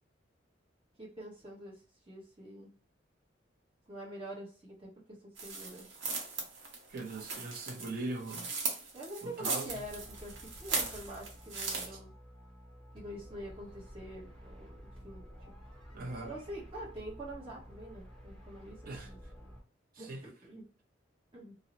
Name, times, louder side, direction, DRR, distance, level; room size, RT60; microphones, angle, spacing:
voice 1, 1.0-2.7 3.9-5.9 8.9-12.1 12.9-15.5 16.2-19.2 20.0-20.7 21.3-21.5, right 1 dB, 30° right, 1.0 m, -46 dB
sound 1, 5.4-11.9, right 4 dB, 75° right, 0.8 m, -38 dB
voice 2, 6.9-8.5 9.2-9.7 15.9-16.3 18.9-19.1 20.0-20.2, right 2 dB, 50° right, 0.5 m, -40 dB
sound 2, 9.7-19.6, equal, 5° left, 0.7 m, -52 dB
2.5 x 2.0 x 2.9 m
head